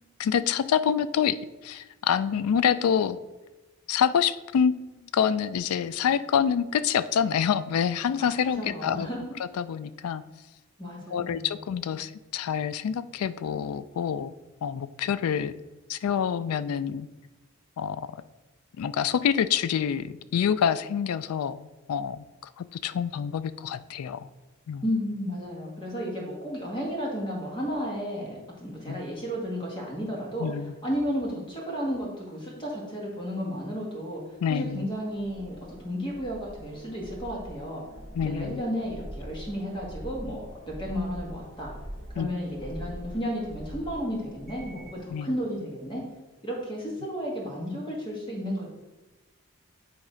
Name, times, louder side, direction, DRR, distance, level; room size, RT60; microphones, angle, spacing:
voice 1, 0.2-1.4 1.6-3.2 3.9-9.1 9.4-10.2 11.1-14.3 14.6-15.5 15.9-17.1 17.8-18.1 18.8-22.2 22.6-24.3 24.7-24.8 28.9-29.0 30.4-30.7 34.4-34.9 38.1-38.6 42.2-42.3 45.1-45.3, left 8 dB, 85° left, 15 dB, 0.3 m, -27 dB
voice 2, 8.2-9.3 10.8-11.5 24.8-30.5 30.8-34.2 34.5-37.8 38.2-41.7 42.1-46.0 46.4-48.7, equal, 20° left, -2 dB, 1.6 m, -33 dB
sound 1, 34.6-45.1, right 1 dB, ahead, 2.3 m, -43 dB
8.8 x 3.2 x 5.0 m, 1.1 s
head